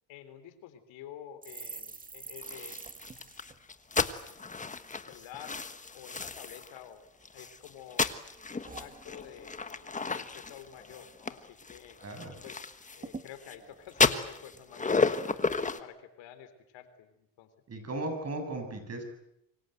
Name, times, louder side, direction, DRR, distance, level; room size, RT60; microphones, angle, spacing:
voice 1, 0.1-2.9 5.0-5.6 5.9-7.0 7.3-8.1 8.5-12.0 12.4-12.6 12.9-15.4 15.8-17.5, left 10 dB, 80° left, 10 dB, 3.7 m, -49 dB
sound 1, 1.4-5.0 5.3-5.5 5.8-6.4 6.9-7.7 8.0-9.7 10.0-10.2 10.5-11.0 11.4-11.5 11.8-12.5 12.7-12.8 13.0-14.9 15.4-15.7, right 4 dB, 20° right, 2.1 m, -48 dB
sound 2, 2.4-6.8 7.2-13.6 13.9-15.8, left 4 dB, 15° left, 1.4 m, -33 dB
voice 2, 12.0-12.4 17.7-19.0, right 2 dB, 35° right, 6 dB, 7.4 m, -36 dB
27.0 x 24.5 x 7.9 m, 0.78 s
cardioid pair, 125°, 43 cm